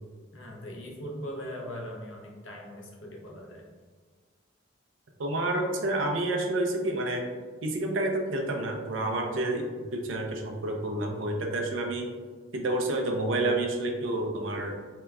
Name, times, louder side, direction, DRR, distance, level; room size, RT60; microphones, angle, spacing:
voice 1, 0.3-3.6, equal, 80° left, -1 dB, 0.7 m, -40 dB
voice 2, 5.2-7.2 7.6-12.1 12.5-14.8, right 1 dB, 80° right, 2 dB, 0.5 m, -29 dB
3.4 x 2.8 x 2.3 m, 1.5 s
head